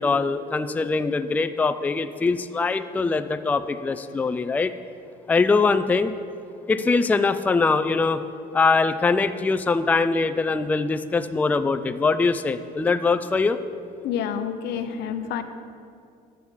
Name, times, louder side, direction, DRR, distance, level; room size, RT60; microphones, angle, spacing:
voice 1, 0.0-4.7 5.3-6.1 6.7-8.2 8.5-13.6, left 4 dB, 10° left, 10 dB, 0.3 m, -22 dB
voice 2, 14.0-15.4, left 8 dB, 80° left, 9 dB, 0.7 m, -28 dB
9.9 x 7.1 x 4.7 m, 2.4 s
cardioid pair, 110°, 17 cm